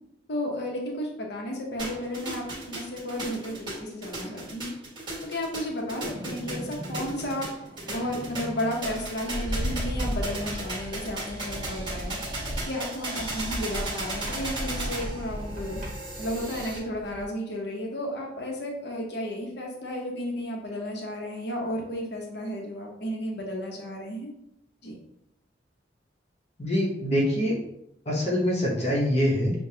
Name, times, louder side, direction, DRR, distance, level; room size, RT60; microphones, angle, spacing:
voice 1, 0.3-4.7 5.2-7.5 7.9-12.2 12.6-15.8 16.2-24.3 24.8-25.0, equal, 65° left, 0 dB, 0.9 m, -33 dB
sound 1, 1.8-16.8, right 2 dB, 25° right, 1.5 m, -36 dB
sound 2, 6.0-17.2, equal, 50° right, 1.2 m, -36 dB
voice 2, 26.6-27.5 28.1-29.5, equal, 35° left, -3 dB, 0.9 m, -24 dB
6.7 x 2.3 x 2.8 m, 0.82 s
head